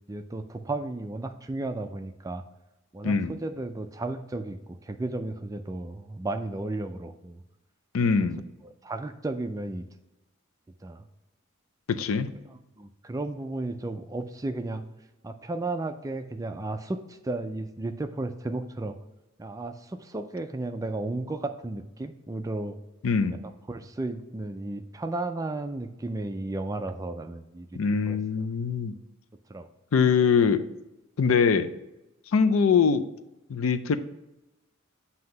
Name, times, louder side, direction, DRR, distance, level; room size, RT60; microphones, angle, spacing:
voice 1, 0.1-2.4 2.9-7.4 8.0-8.1 8.6-9.9 10.8-11.0 12.5-14.8 15.2-19.0 19.4-22.8 23.7-27.8 28.1-28.2 29.5-29.7, right 2 dB, 15° right, 8 dB, 0.3 m, -34 dB
voice 2, 3.0-3.3 7.9-8.4 11.9-12.3 23.0-23.4 27.7-28.9 29.9-30.6 31.2-31.7 32.3-33.0 33.5-34.0, left 5 dB, 80° left, 11 dB, 0.4 m, -23 dB
7.7 x 2.8 x 5.2 m, 0.96 s
head